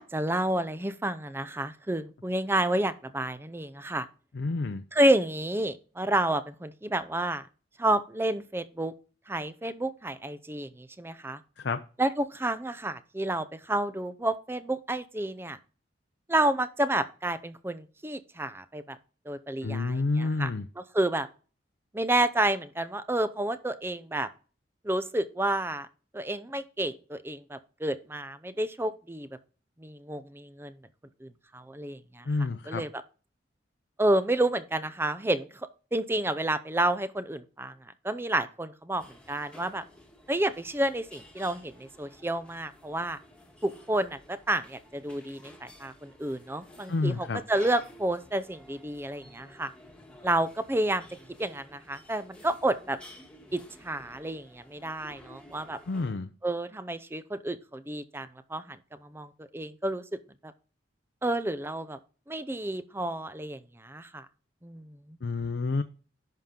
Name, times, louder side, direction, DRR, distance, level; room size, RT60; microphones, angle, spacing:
voice 1, 0.0-4.1 4.9-7.5 7.8-8.9 9.3-11.4 12.0-15.6 16.3-19.0 19.3-20.5 20.8-21.3 21.9-24.3 24.8-25.9 26.1-29.3 29.8-30.7 31.2-32.3 32.7-33.0 34.0-35.5 35.9-37.7 38.0-39.8 40.3-43.2 43.6-49.7 50.2-51.1 51.4-53.0 53.5-55.8 56.4-60.5 61.2-62.0 62.3-64.3 64.6-65.2, right 1 dB, 10° right, 13 dB, 0.5 m, -30 dB
voice 2, 4.3-4.8 11.6-11.8 19.6-20.7 32.3-32.8 46.9-47.4 55.9-56.3 65.2-65.8, left 3 dB, 65° left, 8 dB, 0.5 m, -29 dB
sound 1, 39.0-56.1, left 1 dB, 5° left, 1.5 m, -53 dB
10.5 x 5.8 x 3.7 m, 0.37 s
head